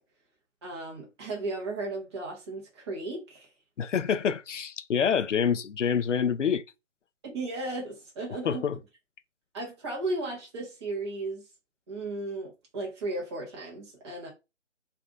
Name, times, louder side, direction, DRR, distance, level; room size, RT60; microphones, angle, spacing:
voice 1, 0.6-3.5 7.2-8.6 9.5-11.5 11.9-14.3, right 2 dB, 20° right, 1.1 m, -35 dB
voice 2, 3.8-6.6 8.4-8.8, left 7 dB, 75° left, 0.5 m, -26 dB
3.4 x 2.6 x 3.6 m
figure-of-eight pair, 150°, 36 cm